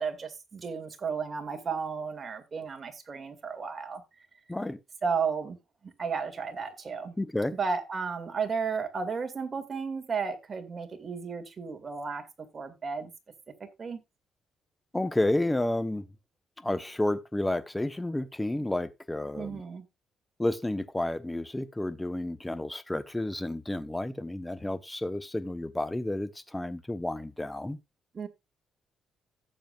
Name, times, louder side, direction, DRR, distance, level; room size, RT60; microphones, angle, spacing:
voice 1, 0.0-4.0 5.0-5.6 5.8-7.2 7.5-12.2 12.5-13.1 13.6-14.0 19.3-19.9 28.1-28.3, right 5 dB, 40° right, 2.3 m, -33 dB
voice 2, 7.2-7.6 14.9-16.0 16.6-19.6 20.4-27.8, left 1 dB, 10° left, 1.1 m, -31 dB
15.5 x 7.3 x 2.5 m
cardioid pair, 90°, 0 cm